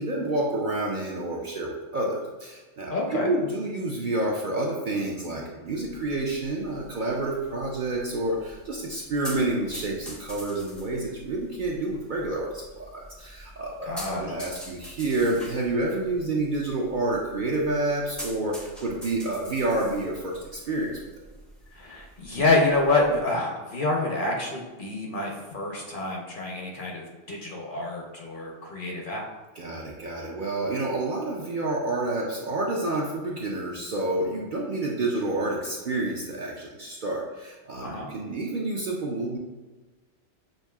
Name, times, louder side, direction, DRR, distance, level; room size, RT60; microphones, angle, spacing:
voice 1, 0.0-21.0 29.5-39.4, right 2 dB, 55° right, -3 dB, 0.6 m, -29 dB
voice 2, 2.9-3.3 13.9-14.3 21.7-29.2 37.8-38.1, left 2 dB, 55° left, -1 dB, 0.7 m, -27 dB
sound 1, 5.8-23.2, equal, ahead, 0.4 m, -45 dB
6.4 x 2.6 x 2.3 m, 1.2 s
omnidirectional pair, 1.2 m